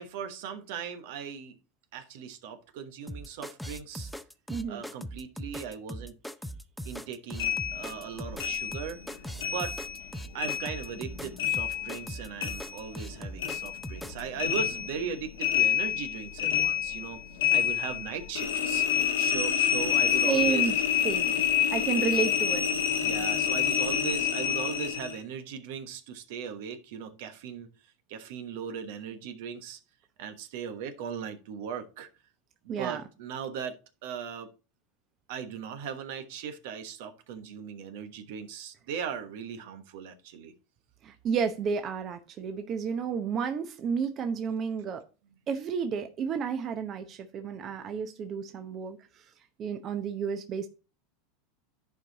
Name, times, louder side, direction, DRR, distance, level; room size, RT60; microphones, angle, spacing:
voice 1, 0.0-1.6 1.9-4.1 4.7-6.2 6.8-9.2 9.5-9.8 10.3-17.2 17.5-20.7 21.3-21.5 23.0-27.7 28.1-29.8 30.2-32.1 32.8-34.5 35.3-40.5, right 7 dB, 70° right, 1.2 m, -38 dB
sound 1, 3.1-14.2, equal, ahead, 0.6 m, -40 dB
voice 2, 4.5-4.8 20.2-20.7 21.0-21.3 21.7-22.7 32.7-33.0 41.0-45.0 45.5-49.0 49.6-50.7, right 6 dB, 40° right, 0.9 m, -31 dB
sound 2, 7.4-10.1 10.4-13.1 13.4-25.2, left 10 dB, 85° left, 1.2 m, -28 dB
10.5 x 4.7 x 3.9 m
hypercardioid pair, 105°, 0 cm